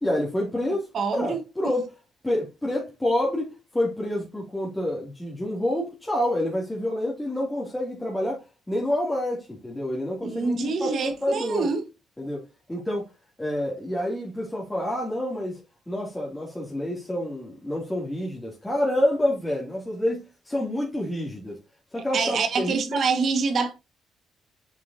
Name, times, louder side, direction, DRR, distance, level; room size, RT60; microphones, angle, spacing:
voice 1, 0.0-1.9 2.2-11.7 12.2-12.4 12.7-13.1 13.4-15.6 15.9-21.6 21.9-23.0, left 1 dB, 10° left, 3.0 m, -28 dB
voice 2, 0.9-1.4 10.2-11.8 22.0-23.7, right 5 dB, 60° right, 2.0 m, -26 dB
8.2 x 6.6 x 2.9 m
cardioid pair, 90°, 0 cm